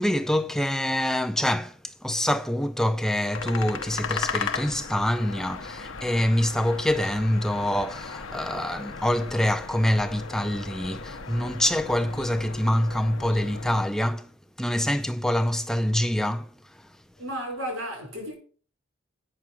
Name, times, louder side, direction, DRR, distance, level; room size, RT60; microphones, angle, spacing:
voice 1, 0.0-14.3 14.6-17.0, left 1 dB, ahead, 0.4 m, -25 dB
sound 1, 3.3-13.8, left 5 dB, 70° left, 0.8 m, -36 dB
voice 2, 17.2-18.4, equal, 75° right, 4.8 m, -33 dB
8.8 x 6.0 x 6.0 m
head